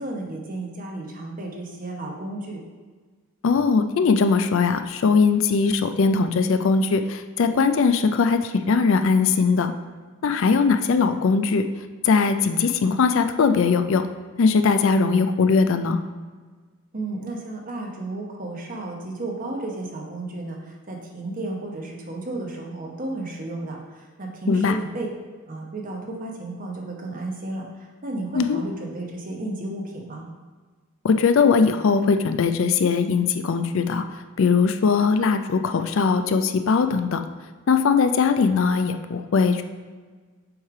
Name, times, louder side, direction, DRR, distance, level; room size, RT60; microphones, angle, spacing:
voice 1, 0.0-2.6 16.9-25.1 25.5-30.3, right 2 dB, 40° right, 0 dB, 1.0 m, -33 dB
voice 2, 3.4-9.7 10.2-11.6 12.0-14.0 14.4-16.0 24.5-24.8 28.3-28.6 31.0-34.0 34.4-37.2 37.7-39.6, left 5 dB, 60° left, 8 dB, 0.4 m, -20 dB
7.1 x 3.2 x 4.8 m, 1.4 s
head